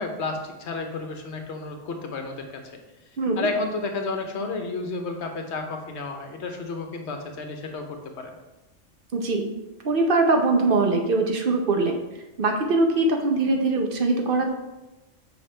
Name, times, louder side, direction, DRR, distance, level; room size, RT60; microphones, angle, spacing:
voice 1, 0.0-2.5 3.4-8.3, left 3 dB, 65° left, 4 dB, 1.1 m, -31 dB
voice 2, 9.1-9.5 9.8-12.0 12.4-14.5, right 3 dB, 50° right, 3 dB, 0.9 m, -22 dB
7.0 x 5.0 x 3.3 m, 1.0 s
omnidirectional pair, 1.3 m